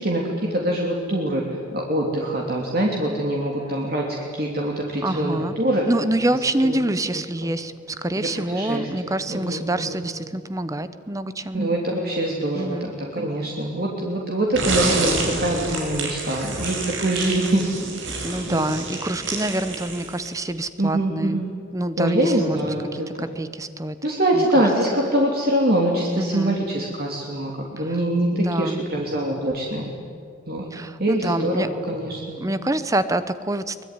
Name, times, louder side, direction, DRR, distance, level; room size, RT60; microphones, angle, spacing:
voice 1, 0.0-4.1 4.3-5.8 6.6-6.8 7.4-7.5 8.2-10.0 11.5-17.6 18.5-18.8 20.8-21.4 22.0-23.4 24.0-29.8 30.5-30.7 31.0-32.4, right 1 dB, 50° right, -1 dB, 3.0 m, -24 dB
voice 2, 5.0-5.5 5.9-11.6 12.5-12.9 18.2-21.4 21.7-22.6 22.9-24.0 24.3-24.6 26.2-26.6 27.8-28.0 28.3-28.9 30.7-31.7 32.4-33.8, right 1 dB, 15° right, 13 dB, 0.8 m, -26 dB
sound 1, 14.5-20.4, right 3 dB, 80° right, 5.6 m, -28 dB
23.5 x 21.0 x 9.7 m, 2.2 s
head